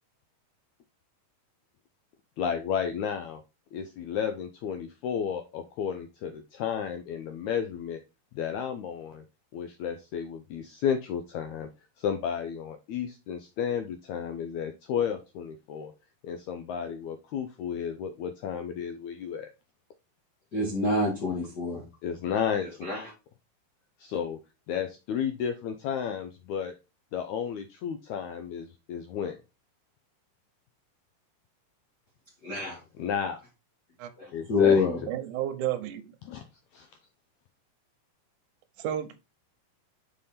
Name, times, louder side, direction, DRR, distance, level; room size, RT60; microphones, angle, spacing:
voice 1, 2.4-3.4 3.7-8.0 8.3-9.2 9.5-11.7 12.0-15.9 16.2-19.5 22.0-22.7 24.0-24.4 24.7-26.7 27.1-29.4 33.0-33.4 34.3-35.1 36.3-36.4 36.7-36.9, left 8 dB, 80° left, 1.7 m, -32 dB
voice 2, 20.5-21.8 22.6-23.0 32.4-32.8 34.2-35.0, left 3 dB, 40° left, 1.8 m, -26 dB
voice 3, 35.1-36.2 38.8-39.2, right 11 dB, 75° right, 2.1 m, -32 dB
5.5 x 5.3 x 4.1 m
omnidirectional pair, 4.0 m